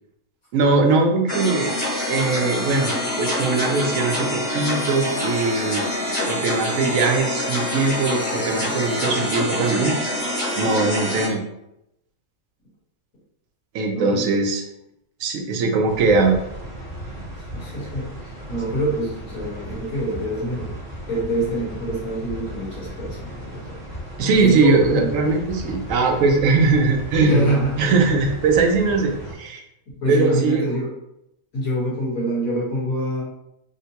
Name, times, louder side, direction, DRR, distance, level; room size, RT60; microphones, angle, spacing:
voice 1, 0.5-1.7 2.1-5.9 6.3-9.9 10.6-11.4 13.7-14.6 15.2-16.4 24.2-29.6 30.1-30.7, right 3 dB, 70° right, 3 dB, 0.9 m, -20 dB
sound 1, 1.3-11.3, left 1 dB, 45° left, 1.2 m, -25 dB
voice 2, 13.9-14.4 17.5-20.7 21.1-23.8 24.2-25.1 27.2-27.7 29.9-30.9 31.5-33.2, right 1 dB, 65° left, -7 dB, 1.8 m, -25 dB
sound 2, 15.9-29.3, right 1 dB, 40° right, 0.7 m, -36 dB
3.6 x 2.1 x 2.8 m, 0.83 s
omnidirectional pair, 1.6 m